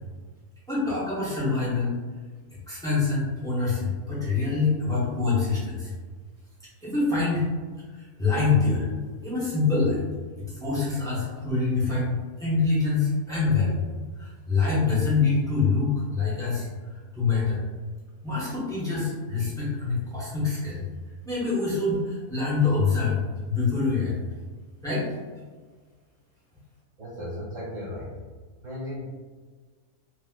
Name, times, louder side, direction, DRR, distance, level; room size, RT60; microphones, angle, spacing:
voice 1, 0.7-1.9 2.7-5.9 6.8-7.5 7.9-8.9 9.2-10.0 10.4-13.8 14.2-17.6 18.2-20.8 21.2-23.2 23.5-24.1 24.8-25.1, left 4 dB, 5° left, -9 dB, 0.7 m, -25 dB
voice 2, 27.0-28.1 28.6-29.0, left 1 dB, 80° right, -8 dB, 0.4 m, -35 dB
4.0 x 2.1 x 2.2 m, 1.5 s
omnidirectional pair, 1.6 m